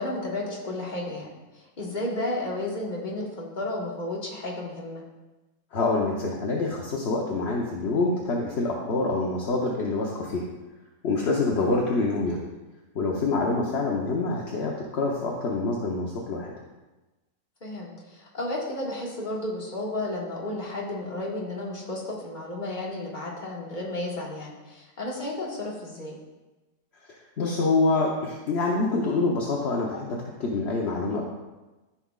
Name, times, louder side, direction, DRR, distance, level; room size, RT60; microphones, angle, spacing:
voice 1, 0.0-1.3 1.8-5.0 17.6-26.2, left 2 dB, 30° left, -4 dB, 1.5 m, -32 dB
voice 2, 5.7-10.4 11.0-12.4 12.9-16.5 27.1-31.2, left 3 dB, 50° left, -2 dB, 0.9 m, -26 dB
14.0 x 5.9 x 2.4 m, 1.1 s
omnidirectional pair, 1.9 m